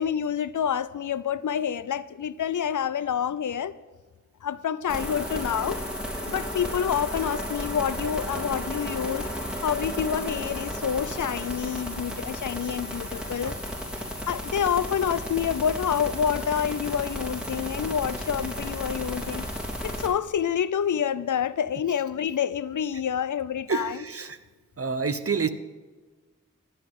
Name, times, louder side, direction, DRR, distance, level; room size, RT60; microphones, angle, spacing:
voice 1, 0.0-3.8 4.4-5.8 6.2-9.3 9.6-13.6 14.3-19.5 19.8-24.1, left 8 dB, 75° left, 0.5 m, -28 dB
sound 1, 4.9-20.1, equal, 5° right, 3.6 m, -33 dB
voice 2, 23.7-24.4 24.8-25.5, right 5 dB, 50° right, 0.9 m, -28 dB
15.5 x 9.8 x 3.7 m
cardioid pair, 45°, 31 cm